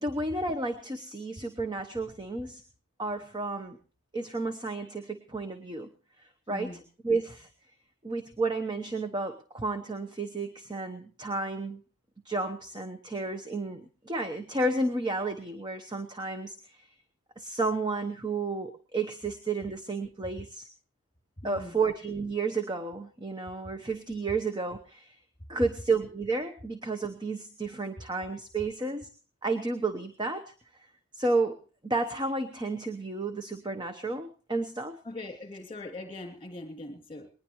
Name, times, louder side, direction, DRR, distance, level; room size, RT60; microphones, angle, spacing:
voice 1, 0.0-2.6 3.0-3.8 4.1-5.9 6.2-7.5 8.0-11.8 12.2-16.9 17.4-20.7 21.4-25.2 25.5-29.1 29.4-30.5 30.8-30.9 31.1-35.0, right 3 dB, 20° right, 6 dB, 0.9 m, -32 dB
voice 2, 6.5-6.8 21.4-21.8 35.0-37.3, left 2 dB, 25° left, 5 dB, 2.8 m, -41 dB
20.5 x 20.0 x 3.1 m, 0.37 s
head